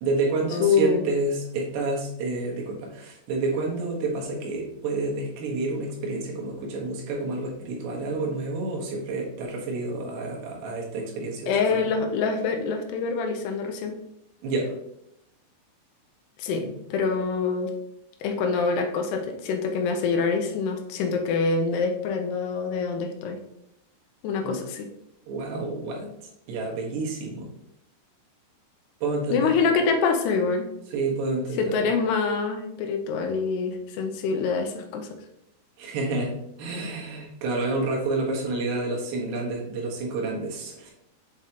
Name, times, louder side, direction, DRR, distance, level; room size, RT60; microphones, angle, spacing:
voice 1, 0.0-11.8 14.4-14.7 24.4-24.6 25.3-26.1 26.5-27.5 29.0-29.5 30.9-31.6 35.8-40.9, right 3 dB, 75° right, -1 dB, 3.3 m, -29 dB
voice 2, 0.6-1.0 11.5-14.0 16.4-17.7 18.2-23.4 24.2-24.9 29.3-30.7 31.6-35.1, left 5 dB, 80° left, 4 dB, 2.6 m, -25 dB
8.2 x 4.7 x 2.9 m, 0.79 s
omnidirectional pair, 5.1 m